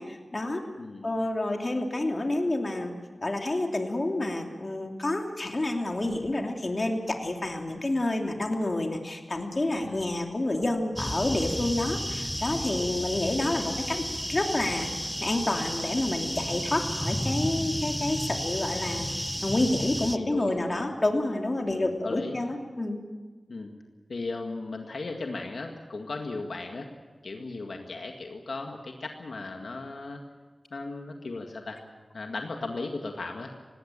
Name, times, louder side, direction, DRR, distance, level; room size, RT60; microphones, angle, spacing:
voice 1, 0.0-0.6 1.0-2.9 3.2-23.0, left 2 dB, 40° left, 2 dB, 2.9 m, -29 dB
sound 1, 11.0-20.2, equal, 5° left, 0.9 m, -32 dB
voice 2, 20.1-20.9 21.7-22.4 23.5-23.7 24.1-26.9 27.2-30.2 30.7-31.8 32.1-33.5, left 3 dB, 80° left, 3 dB, 1.9 m, -36 dB
19.5 x 17.0 x 8.9 m, 1.3 s
wide cardioid pair, 65°, 0 cm